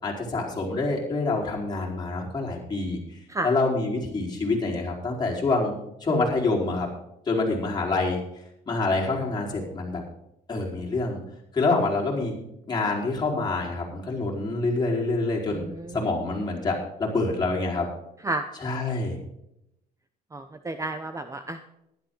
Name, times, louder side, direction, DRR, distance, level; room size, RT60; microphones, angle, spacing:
voice 1, 0.0-6.9 7.3-8.2 8.7-10.0 10.5-11.2 11.5-12.3 12.7-15.6 15.9-17.9 18.6-19.2, left 3 dB, 25° left, -3 dB, 4.5 m, -26 dB
voice 2, 15.5-16.1 18.2-18.5 20.3-21.7, right 2 dB, 20° right, 9 dB, 0.9 m, -32 dB
15.0 x 12.0 x 4.0 m, 0.82 s
cardioid pair, 110°, 17 cm